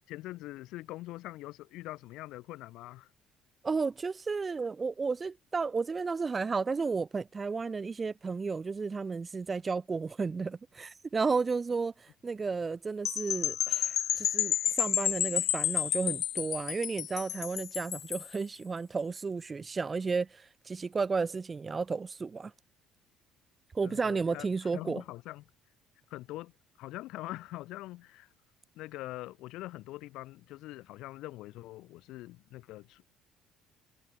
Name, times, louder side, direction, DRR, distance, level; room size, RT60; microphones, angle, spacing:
voice 1, 0.1-3.1 23.8-25.4 26.1-26.5 26.8-28.3 28.7-33.1, left 17 dB, 65° left, 1.5 m, -43 dB
voice 2, 3.6-22.5 23.7-25.0, right 4 dB, 15° right, 2.0 m, -33 dB
sound 1, 13.0-18.3, left 11 dB, 40° left, 0.5 m, -31 dB
cardioid pair, 180°, 0 cm